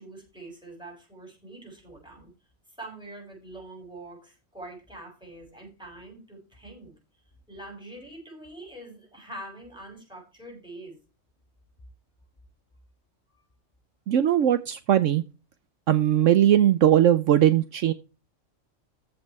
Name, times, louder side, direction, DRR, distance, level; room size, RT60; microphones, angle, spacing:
voice 1, 0.0-2.3 2.8-6.9 7.5-11.0 13.3-13.4, right 1 dB, 5° right, 6.7 m, -44 dB
voice 2, 14.1-15.2 15.9-17.9, right 11 dB, 70° right, 1.0 m, -20 dB
14.5 x 5.3 x 4.7 m
omnidirectional pair, 1.4 m